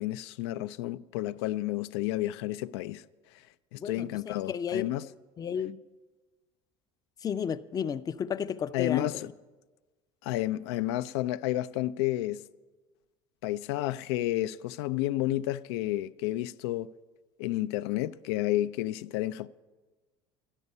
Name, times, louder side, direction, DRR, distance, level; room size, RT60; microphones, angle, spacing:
voice 1, 0.0-3.0 3.7-5.1 8.7-9.3 10.2-12.4 13.4-16.9 17.4-19.5, left 15 dB, 90° left, 0.4 m, -31 dB
voice 2, 3.8-4.9 5.4-5.8 7.2-9.3, left 7 dB, 30° left, 0.5 m, -33 dB
12.5 x 11.0 x 5.4 m
supercardioid pair, 105°, 13 cm